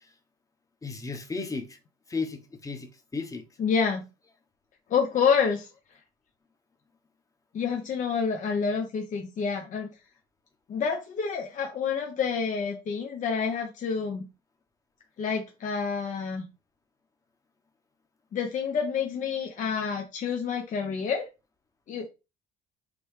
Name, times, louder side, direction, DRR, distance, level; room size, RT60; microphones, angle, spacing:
voice 1, 0.8-1.8 2.1-3.4, left 4 dB, 20° left, 1.0 m, -34 dB
voice 2, 3.6-4.0 4.9-5.7 7.5-9.9 10.7-14.3 15.2-16.4 18.3-21.3 21.9-22.1, left 6 dB, 50° left, 0.8 m, -28 dB
5.2 x 3.1 x 3.3 m
cardioid pair, 110°, 17 cm